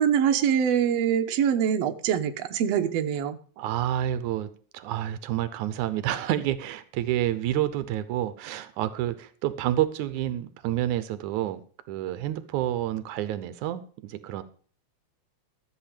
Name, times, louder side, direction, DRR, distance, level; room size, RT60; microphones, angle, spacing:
voice 1, 0.0-3.4, right 8 dB, 65° right, 6 dB, 2.0 m, -24 dB
voice 2, 3.6-11.6 11.9-14.4, right 12 dB, 85° right, 13 dB, 2.2 m, -29 dB
13.5 x 8.1 x 5.0 m, 0.43 s
omnidirectional pair, 3.4 m